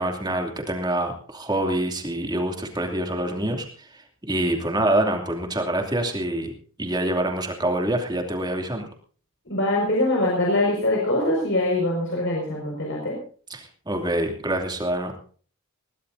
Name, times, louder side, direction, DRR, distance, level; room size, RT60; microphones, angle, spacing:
voice 1, 0.0-6.5 6.8-8.9 13.5-15.1, right 1 dB, 20° right, 3 dB, 2.7 m, -26 dB
voice 2, 9.5-13.2, left 1 dB, 55° left, -2 dB, 5.6 m, -23 dB
21.0 x 18.5 x 2.7 m, 0.43 s
head